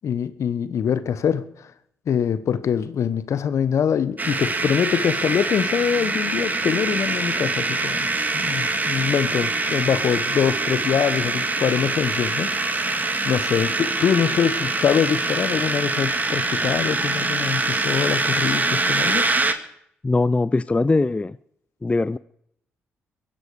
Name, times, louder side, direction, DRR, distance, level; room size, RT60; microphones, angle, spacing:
voice 1, 0.0-1.4 2.1-8.1 8.3-19.2, left 8 dB, 60° left, 14 dB, 1.1 m, -24 dB
sound 1, 4.2-19.5, right 3 dB, 30° right, 2.0 m, -24 dB
voice 2, 20.0-21.4 21.8-22.2, left 3 dB, 20° left, 17 dB, 0.5 m, -21 dB
23.0 x 9.8 x 5.0 m, 0.70 s
hypercardioid pair, 40°, 6 cm